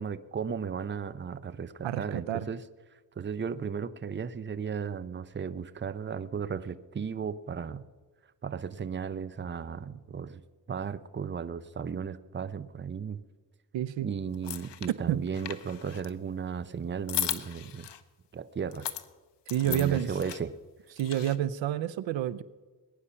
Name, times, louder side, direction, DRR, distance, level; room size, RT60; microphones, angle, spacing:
voice 1, 0.0-2.6 3.2-7.9 8.4-10.4 10.7-13.2 14.0-17.9 18.3-18.9 19.6-20.5, right 6 dB, 25° right, 15 dB, 0.7 m, -35 dB
voice 2, 1.8-2.5 13.7-14.1 14.9-15.2 19.5-20.1 21.0-22.4, right 11 dB, 90° right, 17 dB, 0.7 m, -29 dB
sound 1, 14.3-14.9 15.3-16.1 17.1-18.0 18.7-19.1 19.5-20.4 21.0-21.4, left 10 dB, 70° left, 1.0 m, -36 dB
21.0 x 9.8 x 5.7 m, 1.3 s
cardioid pair, 90°, 44 cm